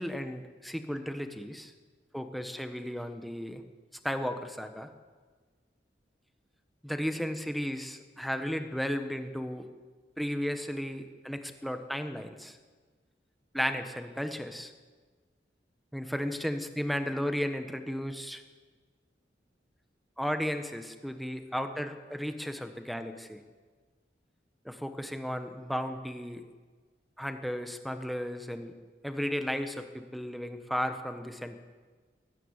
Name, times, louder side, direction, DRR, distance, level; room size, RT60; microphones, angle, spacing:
voice 1, 0.0-1.7 2.1-3.6 4.0-4.9 6.8-9.7 10.2-12.6 13.5-14.7 15.9-18.4 20.2-23.4 24.6-26.4 27.2-28.7 29.0-31.6, equal, ahead, 7 dB, 1.2 m, -34 dB
21.5 x 13.0 x 9.8 m, 1.4 s
head